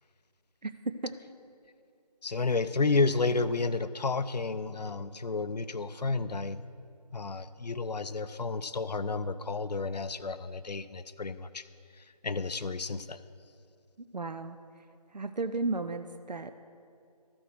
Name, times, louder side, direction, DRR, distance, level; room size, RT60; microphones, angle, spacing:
voice 1, 0.6-1.2 14.1-14.8 15.1-16.5, right 3 dB, 90° right, 9 dB, 0.6 m, -34 dB
voice 2, 2.2-6.6 7.1-11.6 11.9-13.2, left 3 dB, 80° left, 13 dB, 0.5 m, -31 dB
13.5 x 6.1 x 6.3 m, 2.4 s
figure-of-eight pair, 165°, 21 cm